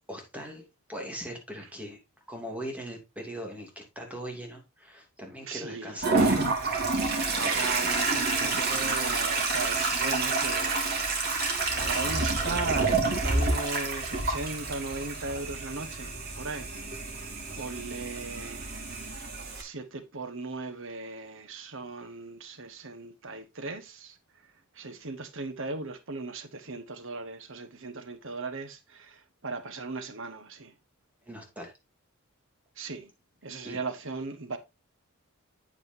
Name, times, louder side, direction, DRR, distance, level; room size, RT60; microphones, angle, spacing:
voice 1, 0.1-2.0 2.3-6.6 7.4-7.5 31.2-31.7 33.6-33.8, equal, 5° right, 2.7 m, -40 dB
voice 2, 5.4-6.0 7.3-17.2 17.5-18.8 19.5-24.2 24.4-30.7 32.7-33.1 33.4-34.6, right 3 dB, 65° right, 1.4 m, -38 dB
Toilet flush, 6.0-19.6, right 3 dB, 50° right, 3.0 m, -28 dB
8.7 x 8.5 x 2.8 m
head